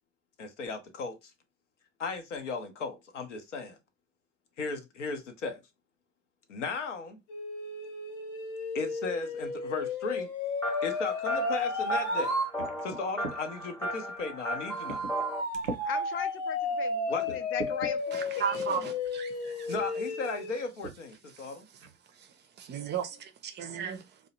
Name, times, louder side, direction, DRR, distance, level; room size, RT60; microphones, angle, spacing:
voice 1, 0.4-1.3 2.0-3.8 4.6-5.6 6.5-7.2 8.7-10.3 10.8-12.4 12.8-15.1 17.1-17.4 19.7-21.7, left 4 dB, 80° left, 0.6 m, -36 dB
sound 1, 7.3-12.5 14.7-20.5, left 2 dB, 65° left, 1.0 m, -33 dB
sound 2, 10.6-15.4, equal, 5° left, 0.9 m, -37 dB
sound 3, 12.6-13.4 14.1-14.3 14.9-15.2 15.5-15.9 16.5-16.6 17.2-17.9 19.0-19.2 19.7-19.9 20.8-21.0 21.4-21.5 21.8-22.2, right 2 dB, 85° right, 0.5 m, -40 dB
voice 2, 15.8-18.8, left 8 dB, 35° left, 0.5 m, -39 dB
voice 3, 18.1-19.7 21.3-21.8 22.1-24.2, right 7 dB, 30° right, 0.4 m, -36 dB
2.6 x 2.0 x 2.7 m
figure-of-eight pair, 60°, 36 cm